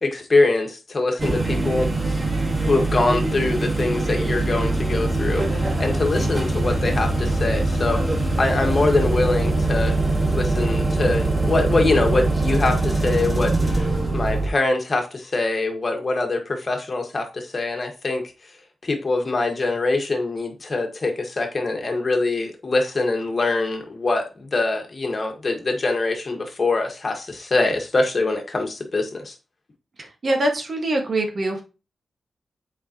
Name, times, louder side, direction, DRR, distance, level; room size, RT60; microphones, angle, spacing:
voice 1, 0.0-1.9 2.6-10.0 10.3-18.2 18.8-29.3, left 3 dB, 40° left, 1.5 m, -23 dB
sound 1, 1.2-14.5, right 2 dB, 25° right, 1.8 m, -22 dB
voice 2, 30.0-31.6, right 1 dB, 50° right, 1.6 m, -24 dB
7.6 x 4.8 x 2.9 m
cardioid pair, 90°, 0 cm